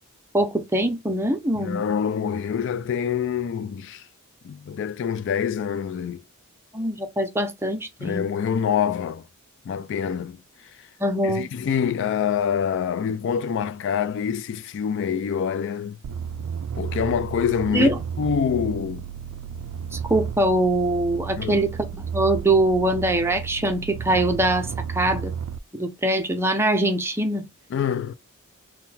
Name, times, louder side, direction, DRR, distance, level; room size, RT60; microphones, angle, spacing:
voice 1, 0.3-1.8 6.7-8.3 11.0-11.5 17.7-18.0 19.9-25.3 25.7-27.4, right 1 dB, 10° right, 0.6 m, -23 dB
voice 2, 1.5-4.1 4.4-6.2 8.0-9.3 9.7-10.4 11.2-16.0 16.8-17.9 18.2-19.0 21.4-21.6 27.7-28.1, left 7 dB, 60° left, 0.3 m, -26 dB
sound 1, 16.0-25.6, right 7 dB, 85° right, 0.3 m, -33 dB
3.7 x 2.2 x 4.1 m
head